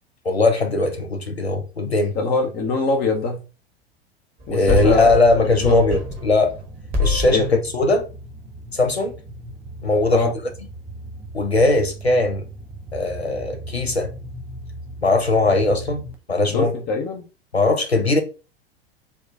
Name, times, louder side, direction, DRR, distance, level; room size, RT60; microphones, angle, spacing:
voice 1, 0.2-2.1 4.5-6.5 7.0-7.5 7.7-8.0 8.7-9.1 9.8-10.3 11.3-12.5 12.9-14.1 15.0-16.0 16.3-16.7 17.5-18.2, left 2 dB, 90° left, 0.7 m, -19 dB
voice 2, 2.1-3.4 4.5-5.2 5.6-5.8 7.3-7.6 10.1-10.3 16.5-17.2, left 3 dB, 30° left, 0.8 m, -23 dB
sound 1, 4.4-6.6 6.9-7.6, left 1 dB, 30° right, 1.0 m, -25 dB
sound 2, 4.6-16.1, right 1 dB, 5° right, 0.3 m, -38 dB
4.3 x 2.3 x 2.5 m
figure-of-eight pair, 85°, 31 cm